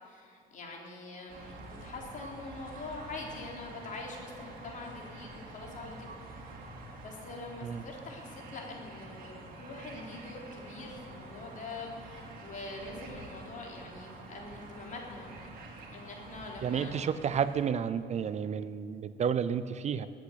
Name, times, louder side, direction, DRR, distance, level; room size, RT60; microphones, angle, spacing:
voice 1, 0.0-6.5 7.0-15.3 15.9-16.9, left 3 dB, 50° left, 0 dB, 3.9 m, -44 dB
sound 1, 1.3-17.7, right 2 dB, 60° right, 3.0 m, -47 dB
voice 2, 16.6-20.1, right 7 dB, 40° right, 13 dB, 0.6 m, -31 dB
20.5 x 8.5 x 8.2 m, 2.5 s
cardioid pair, 110°, 17 cm